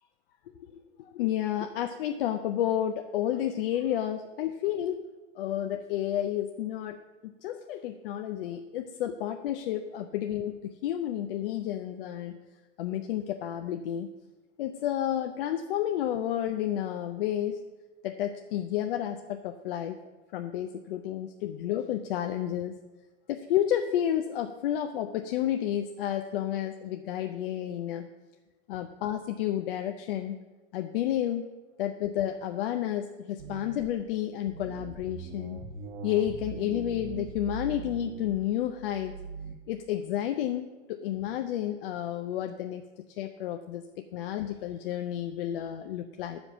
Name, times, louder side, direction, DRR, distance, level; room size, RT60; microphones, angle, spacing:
voice 1, 0.6-5.0 5.4-12.4 12.8-14.1 14.6-17.6 18.0-20.0 20.3-22.8 23.3-28.1 28.7-30.4 30.7-31.4 31.8-35.6 36.0-39.2 39.7-42.8 43.2-46.4, left 11 dB, 50° left, 6 dB, 0.6 m, -31 dB
sound 1, 33.4-34.0 34.5-39.5, right 5 dB, 50° right, 0.9 m, -41 dB
9.2 x 5.2 x 7.2 m, 1.2 s
supercardioid pair, 150°, 35 cm